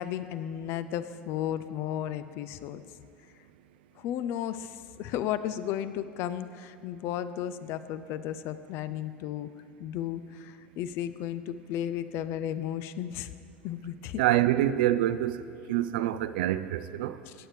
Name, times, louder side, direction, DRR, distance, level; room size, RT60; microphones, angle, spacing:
voice 1, 0.0-2.8 4.0-4.7 5.0-9.5 9.8-13.3 13.6-14.2 17.3-17.4, left 11 dB, 50° left, 0.4 m, -34 dB
voice 2, 14.2-15.4 15.7-17.2, right 13 dB, 60° right, 0.4 m, -26 dB
16.5 x 8.7 x 3.3 m
figure-of-eight pair, 70°, 6 cm